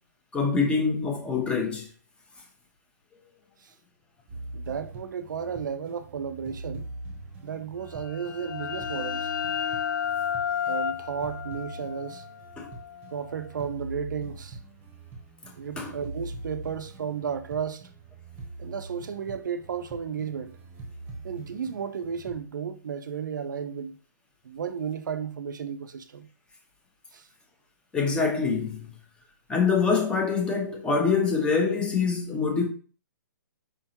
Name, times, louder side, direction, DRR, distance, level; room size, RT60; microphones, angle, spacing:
voice 1, 0.3-1.9 12.6-12.7 15.8-15.9 27.9-28.8 29.5-32.6, left 5 dB, 10° left, 1.1 m, -25 dB
sound 1, 4.3-22.4, right 2 dB, 20° right, 1.1 m, -43 dB
voice 2, 4.5-6.9 7.4-9.3 10.7-12.2 13.1-14.6 15.6-17.9 18.6-20.6 21.2-24.0 24.4-26.3 27.1-27.3, right 7 dB, 75° right, 0.6 m, -33 dB
sound 2, 7.9-13.4, left 8 dB, 85° left, 0.4 m, -32 dB
5.2 x 3.5 x 2.9 m
hypercardioid pair, 150°, 10 cm